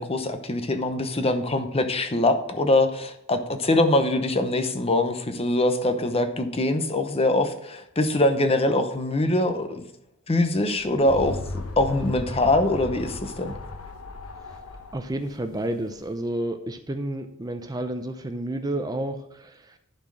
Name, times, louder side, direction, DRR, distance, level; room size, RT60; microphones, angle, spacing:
voice 1, 0.0-9.8 10.3-13.5, left 2 dB, 25° left, 8 dB, 0.8 m, -23 dB
sound 1, 10.6-16.2, left 2 dB, 80° left, 1.0 m, -37 dB
voice 2, 14.9-19.8, right 1 dB, 15° right, 7 dB, 0.5 m, -30 dB
11.5 x 4.4 x 6.1 m, 0.79 s
head